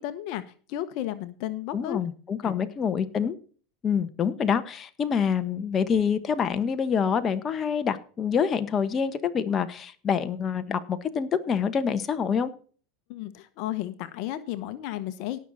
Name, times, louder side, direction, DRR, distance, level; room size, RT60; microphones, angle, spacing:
voice 1, 0.0-2.0 2.4-2.5 13.1-15.4, left 13 dB, 60° left, 12 dB, 1.1 m, -33 dB
voice 2, 1.7-3.4 3.8-12.5, left 7 dB, 30° left, 9 dB, 1.3 m, -26 dB
18.0 x 6.5 x 4.1 m, 0.41 s
hypercardioid pair, 100°, 0 cm